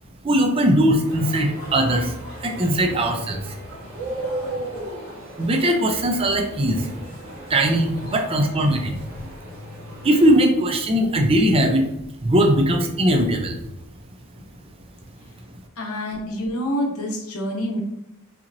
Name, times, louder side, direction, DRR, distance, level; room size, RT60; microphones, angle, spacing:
voice 1, 0.2-3.6 5.4-6.9 7.5-9.0 10.0-11.8 12.2-13.6, right 1 dB, 25° right, 3 dB, 0.5 m, -20 dB
sound 1, 1.0-10.4, right 1 dB, 70° right, 1.6 m, -36 dB
voice 2, 15.8-17.8, equal, 75° left, 0 dB, 1.1 m, -27 dB
5.7 x 2.9 x 2.6 m, 0.84 s
head